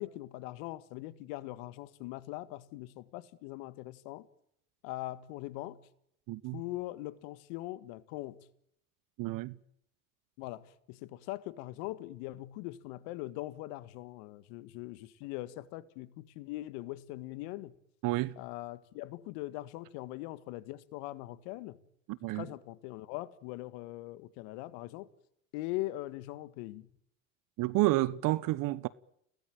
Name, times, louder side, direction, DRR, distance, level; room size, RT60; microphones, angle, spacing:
voice 1, 0.0-4.3 4.8-5.8 6.5-8.5 10.4-17.8 18.4-21.8 22.2-25.1 25.5-26.9, left 17 dB, 70° left, 1.8 m, -41 dB
voice 2, 6.3-6.6 9.2-9.5 18.0-18.3 22.1-22.5 27.6-28.9, right 18 dB, 60° right, 1.1 m, -30 dB
30.0 x 18.5 x 9.0 m
hypercardioid pair, 65°, 37 cm